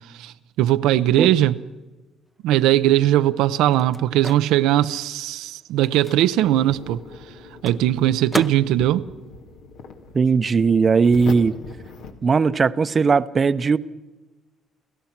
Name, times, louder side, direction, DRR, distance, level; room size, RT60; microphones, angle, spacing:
voice 1, 0.2-1.6 2.4-7.0 7.6-9.1, right 13 dB, 90° right, 0.6 m, -19 dB
Microwave oven, 2.4-10.5 10.8-12.7, equal, ahead, 0.6 m, -38 dB
sound 1, 6.4-12.1, left 4 dB, 85° left, 2.0 m, -40 dB
voice 2, 10.1-11.6 12.2-13.8, right 5 dB, 35° right, 0.7 m, -18 dB
30.0 x 15.0 x 5.9 m
cardioid pair, 100°, 0 cm